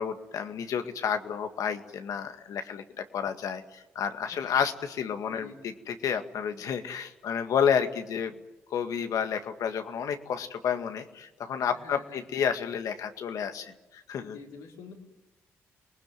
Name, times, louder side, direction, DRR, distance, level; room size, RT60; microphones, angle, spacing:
voice 1, 0.0-8.3 8.7-14.4, left 7 dB, 70° left, 7 dB, 1.9 m, -30 dB
voice 2, 5.3-5.7 11.7-12.3 14.2-14.9, left 5 dB, 90° left, -1 dB, 4.7 m, -47 dB
27.5 x 19.5 x 9.3 m, 1.0 s
supercardioid pair, 55°, 6 cm